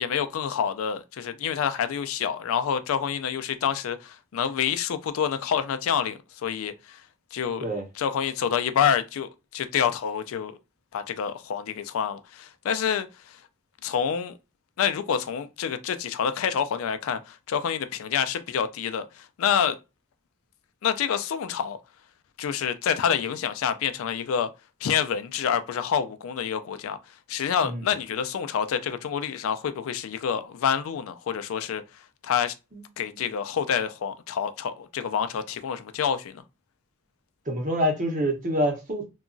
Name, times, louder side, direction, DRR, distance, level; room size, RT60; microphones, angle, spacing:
voice 1, 0.0-7.0 7.3-7.6 8.0-10.5 10.9-13.4 13.8-14.3 14.8-19.8 20.8-21.8 22.4-24.5 24.8-27.0 27.3-31.8 32.2-32.5 33.0-36.4, left 8 dB, 75° left, 0.3 m, -27 dB
voice 2, 37.5-39.0, equal, 35° right, 0.8 m, -26 dB
2.8 x 2.3 x 2.5 m
head